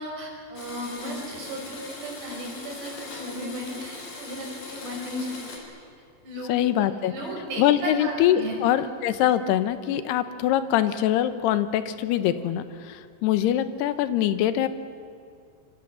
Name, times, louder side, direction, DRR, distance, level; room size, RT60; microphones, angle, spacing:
voice 1, 0.0-5.3 6.2-8.6, right 1 dB, 65° right, 0 dB, 7.7 m, -35 dB
Domestic sounds home sounds, 0.6-5.6, left 3 dB, 45° left, 5.5 m, -40 dB
voice 2, 6.5-7.1 7.6-14.7, left 11 dB, 75° left, 12 dB, 2.9 m, -23 dB
26.5 x 25.0 x 7.5 m, 2.3 s
omnidirectional pair, 5.2 m